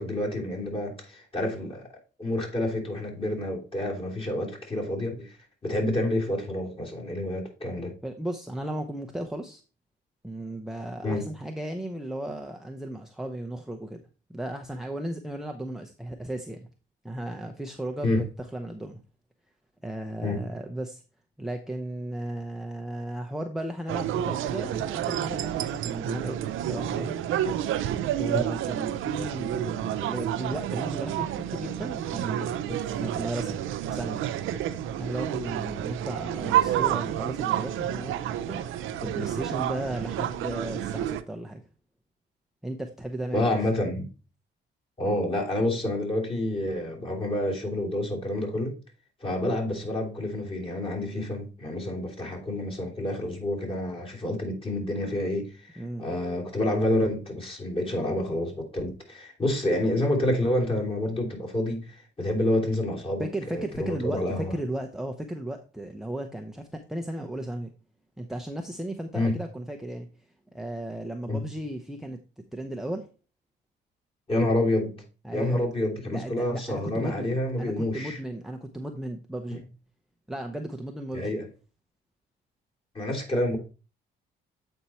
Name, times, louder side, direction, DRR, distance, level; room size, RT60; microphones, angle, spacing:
voice 1, 0.0-1.9 2.2-5.3 5.6-7.9 11.0-11.2 18.0-18.2 20.2-20.4 28.3-28.4 43.3-44.1 45.0-48.7 49.2-64.5 69.1-69.4 71.3-71.4 74.3-74.9 75.3-78.2 79.5-79.6 81.1-81.5 82.9-83.6, left 1 dB, 30° left, 3.0 m, -28 dB
voice 2, 8.0-9.6 10.2-16.7 17.0-19.0 19.8-21.0 21.4-27.1 28.1-34.2 35.0-41.6 42.6-43.6 55.8-56.1 63.2-67.7 68.2-70.1 70.5-72.2 72.5-73.1 75.2-75.6 76.0-79.6 80.3-81.4, right 1 dB, ahead, 0.7 m, -35 dB
sound 1, 23.9-41.2, right 11 dB, 80° right, 0.6 m, -29 dB
8.1 x 4.5 x 4.3 m
cardioid pair, 90°, 20 cm